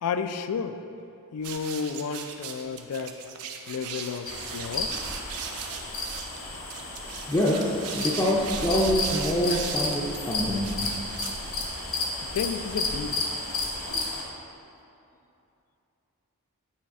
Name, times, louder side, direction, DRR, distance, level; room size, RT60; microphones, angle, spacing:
voice 1, 0.0-0.8 1.3-3.1 3.7-5.0 5.5-5.6 12.2-13.2, left 6 dB, 80° left, 10 dB, 0.4 m, -32 dB
sound 1, 1.4-11.9, right 5 dB, 85° right, 0.6 m, -38 dB
sound 2, 4.3-14.2, left 3 dB, 60° left, 1.2 m, -32 dB
voice 2, 7.3-10.9, equal, 15° left, -5 dB, 0.4 m, -25 dB
8.5 x 3.2 x 4.7 m, 2.7 s
head